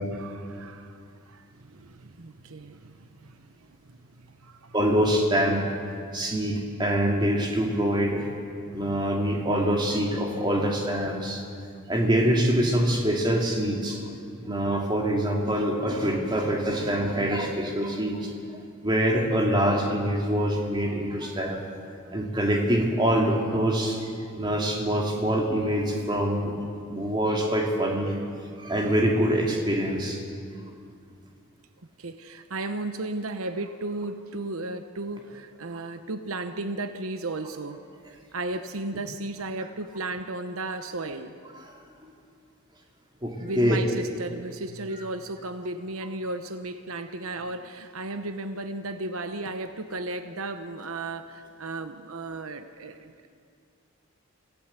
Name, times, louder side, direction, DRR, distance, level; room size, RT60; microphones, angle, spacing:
voice 1, 0.0-4.7 8.7-8.8 32.0-37.8 38.1-41.3 43.4-53.3, right 2 dB, 80° right, 9 dB, 1.0 m, -35 dB
voice 2, 4.7-5.6 6.1-8.3 8.7-11.4 11.9-14.2 14.4-18.4 18.8-21.6 22.1-26.5 26.9-28.2 28.6-30.2 42.0-42.1 43.2-43.8, equal, 20° right, 0 dB, 2.8 m, -25 dB
25.5 x 16.0 x 8.3 m, 2.3 s
head